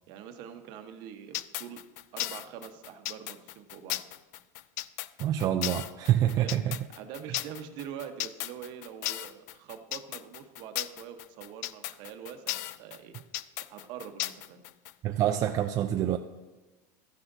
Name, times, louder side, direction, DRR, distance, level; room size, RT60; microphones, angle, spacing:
voice 1, 0.1-1.8 2.1-4.0 6.4-6.6 6.9-13.1 13.7-14.6, right 8 dB, 55° right, 6 dB, 1.0 m, -44 dB
sound 1, 1.3-14.9, left 16 dB, 70° left, 0.3 m, -35 dB
voice 2, 5.2-6.8 7.2-7.3 15.0-16.2, right 11 dB, 35° right, 6 dB, 0.4 m, -26 dB
13.5 x 9.7 x 2.7 m, 1.2 s
supercardioid pair, 140°, 9 cm